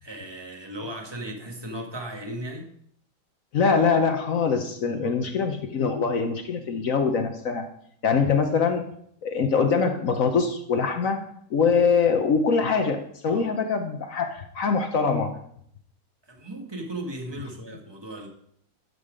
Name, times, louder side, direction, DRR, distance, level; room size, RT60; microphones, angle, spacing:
voice 1, 0.0-2.7 4.9-5.2 13.3-13.5 16.3-18.3, right 1 dB, 15° right, 2 dB, 1.1 m, -36 dB
voice 2, 3.5-7.7 8.0-8.9 9.2-11.2 11.5-15.4, left 5 dB, 65° left, 6 dB, 0.8 m, -23 dB
11.0 x 5.7 x 5.0 m, 0.67 s
omnidirectional pair, 2.3 m